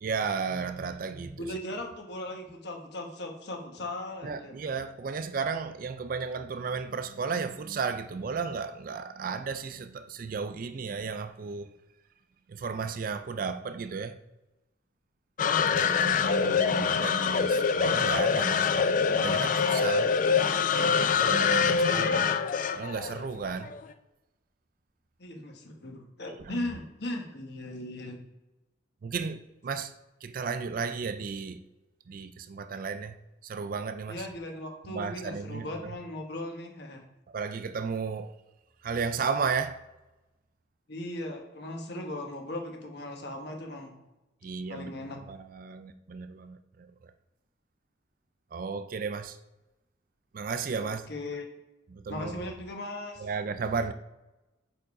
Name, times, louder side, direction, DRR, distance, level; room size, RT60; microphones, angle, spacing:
voice 1, 0.0-1.5 4.2-11.8 12.5-14.2 15.8-20.1 21.0-22.3 22.7-23.7 26.3-26.6 29.0-29.9 30.2-31.6 32.1-33.2 33.4-34.3 34.8-35.9 37.3-38.3 38.8-39.8 44.4-44.9 45.3-47.1 48.5-49.4 50.3-51.1 51.9-52.5 53.2-53.9, right 5 dB, 45° right, 0.4 m, -34 dB
voice 2, 1.4-4.6 25.2-28.2 34.1-37.0 40.9-43.9 44.7-45.2 50.8-51.5 52.1-53.3, left 1 dB, 60° left, 1.2 m, -38 dB
sound 1, 15.4-23.8, left 6 dB, 45° left, 0.4 m, -25 dB
5.0 x 4.7 x 4.7 m
head